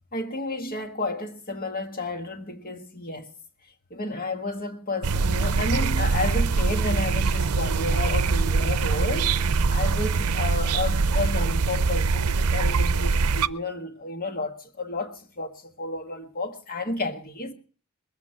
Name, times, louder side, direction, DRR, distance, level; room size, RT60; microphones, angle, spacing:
voice 1, 0.1-3.3 3.9-17.5, left 2 dB, 45° left, 1.7 m, -31 dB
sound 1, 5.0-13.5, right 4 dB, 85° right, 0.6 m, -23 dB
21.5 x 8.5 x 5.7 m
head